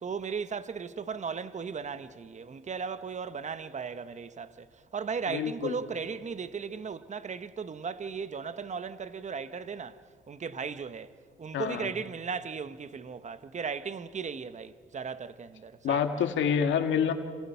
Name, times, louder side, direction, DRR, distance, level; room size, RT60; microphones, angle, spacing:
voice 1, 0.0-16.0, right 6 dB, 35° right, 1.1 m, -37 dB
voice 2, 5.3-5.8 11.5-11.9 15.8-17.1, left 7 dB, 70° left, 2.0 m, -27 dB
28.0 x 27.5 x 5.8 m
cardioid pair, 90°, 20 cm